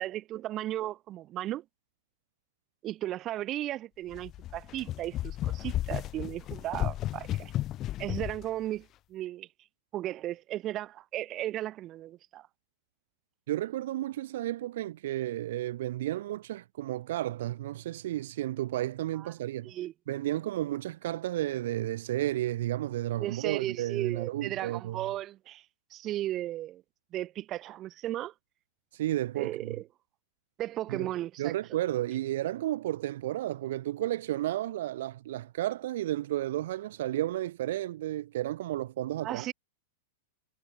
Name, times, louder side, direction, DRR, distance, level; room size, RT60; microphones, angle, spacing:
voice 1, 0.0-1.6 2.8-7.5 8.0-9.5 9.9-12.5 19.1-19.3 19.7-19.9 23.2-25.6 25.9-26.8 27.1-28.3 29.4-29.8 30.6-31.5 39.2-39.5, right 14 dB, 25° right, 3.5 m, -35 dB
sound 1, 4.1-8.4, left 13 dB, 25° left, 1.5 m, -34 dB
voice 2, 13.5-19.7 20.1-25.0 28.9-29.8 30.9-31.1 31.4-39.5, right 14 dB, 65° right, 1.4 m, -32 dB
supercardioid pair, 155°, 0 cm